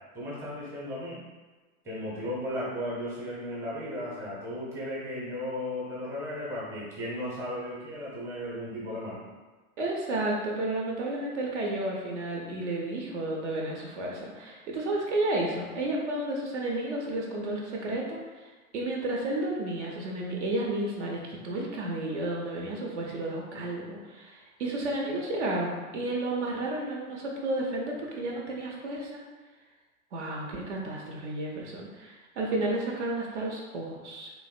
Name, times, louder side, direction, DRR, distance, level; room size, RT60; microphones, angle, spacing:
voice 1, 0.1-1.2 1.8-9.2, left 1 dB, 5° right, -6 dB, 0.7 m, -35 dB
voice 2, 9.8-18.5 18.7-29.2 30.1-34.3, right 2 dB, 55° right, -1 dB, 0.6 m, -32 dB
3.1 x 2.5 x 2.4 m, 1.2 s
figure-of-eight pair, 90°, 43 cm